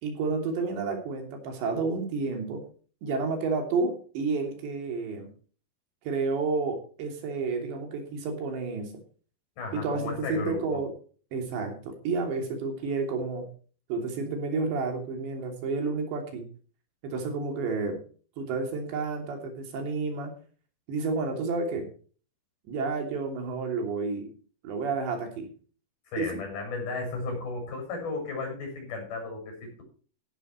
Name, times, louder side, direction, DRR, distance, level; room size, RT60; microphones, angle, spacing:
voice 1, 0.0-2.7 3.0-5.3 6.0-9.0 9.7-10.9 11.3-13.5 13.9-16.5 17.0-18.0 18.4-20.3 20.9-21.9 22.7-24.4 24.6-25.5 26.2-26.4, right 4 dB, 75° right, 4 dB, 5.2 m, -30 dB
voice 2, 9.6-10.8 26.1-29.8, left 3 dB, 55° left, 2 dB, 8.8 m, -34 dB
16.0 x 12.0 x 3.1 m, 0.41 s
omnidirectional pair, 5.1 m